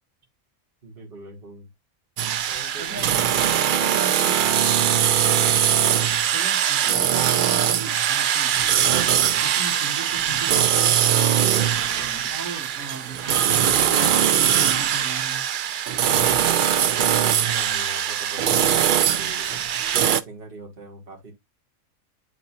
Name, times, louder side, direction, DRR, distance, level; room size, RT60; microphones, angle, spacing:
voice 1, 0.8-1.7 2.5-3.0 17.4-19.6 19.9-21.3, right 2 dB, 40° right, 2.1 m, -41 dB
sound 1, 2.2-20.2, right 9 dB, 80° right, 0.4 m, -21 dB
voice 2, 2.8-3.5 3.8-5.0 6.3-8.5 9.4-11.1 11.6-15.5, right 4 dB, 65° right, 2.3 m, -38 dB
9.8 x 4.0 x 2.6 m
omnidirectional pair, 1.5 m